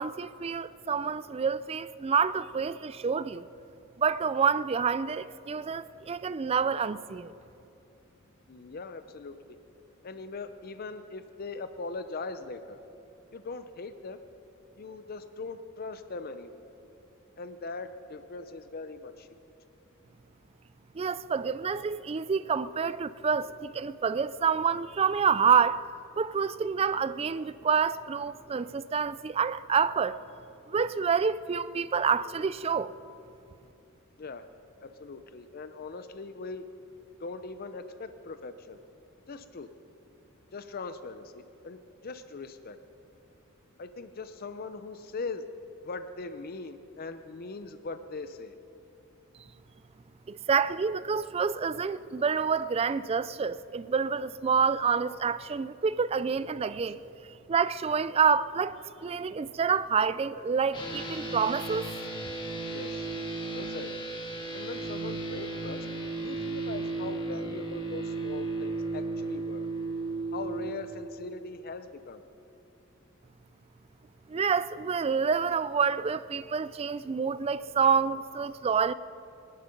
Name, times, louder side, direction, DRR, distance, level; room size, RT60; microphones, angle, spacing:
voice 1, 0.0-3.5 4.0-7.3 21.0-25.8 26.2-30.2 30.7-32.9 50.3-57.0 57.5-61.9 74.3-78.9, right 6 dB, 30° right, 0.3 m, -28 dB
voice 2, 8.5-9.6 10.0-12.8 13.3-14.2 14.8-16.5 17.4-19.3 34.2-34.5 34.8-36.6 37.2-38.8 39.3-39.7 40.5-42.8 43.8-45.5 45.8-48.5 62.7-63.1 63.5-63.9 64.5-65.9 66.2-69.7 70.3-72.2, left 3 dB, 45° left, 0.6 m, -40 dB
sound 1, 60.7-70.7, right 3 dB, 25° left, 1.8 m, -35 dB
24.5 x 10.5 x 5.3 m
head